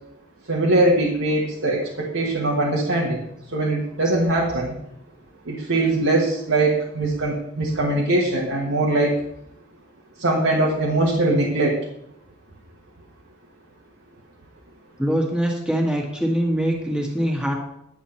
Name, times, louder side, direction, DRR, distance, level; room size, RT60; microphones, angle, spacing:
voice 1, 0.5-3.2 3.5-4.7 5.5-9.2 10.2-11.8, right 2 dB, 80° right, -3 dB, 1.4 m, -21 dB
voice 2, 15.0-17.5, equal, 5° right, 0 dB, 1.7 m, -23 dB
10.0 x 7.2 x 4.3 m, 0.79 s
head